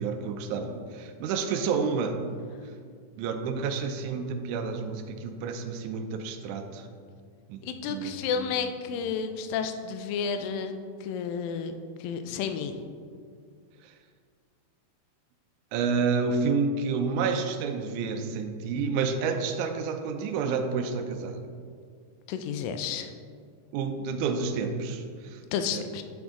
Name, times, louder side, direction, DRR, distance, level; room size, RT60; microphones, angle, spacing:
voice 1, 0.0-2.2 3.2-6.9 7.5-8.6 13.8-13.9 15.7-21.4 23.7-25.4 25.7-25.8, right 5 dB, 80° right, 6 dB, 1.8 m, -29 dB
voice 2, 7.6-10.7 11.0-11.7 12.0-12.8 22.3-23.1 25.5-26.0, left 6 dB, 85° left, 8 dB, 2.2 m, -31 dB
7.9 x 6.0 x 3.6 m, 2.1 s
omnidirectional pair, 3.9 m